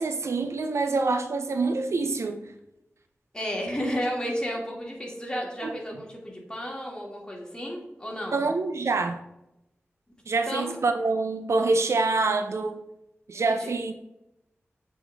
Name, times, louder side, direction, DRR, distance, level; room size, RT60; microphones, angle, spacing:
voice 1, 0.0-2.5 8.3-9.2 10.3-12.8 13.3-13.9, right 3 dB, 75° right, 0.5 m, -26 dB
voice 2, 3.3-8.4 10.4-10.8 13.6-13.7, equal, 15° left, 2.3 m, -32 dB
7.8 x 4.1 x 3.4 m
cardioid pair, 50°, 5 cm